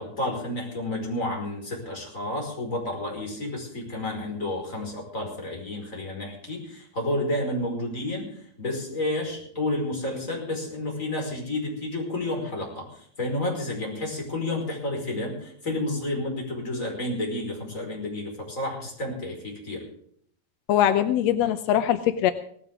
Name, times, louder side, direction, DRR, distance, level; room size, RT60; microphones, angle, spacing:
voice 1, 0.0-19.8, left 1 dB, 20° left, 0 dB, 5.3 m, -31 dB
voice 2, 20.7-22.3, left 11 dB, 80° left, 9 dB, 1.5 m, -22 dB
18.0 x 16.0 x 3.7 m, 0.63 s
omnidirectional pair, 4.0 m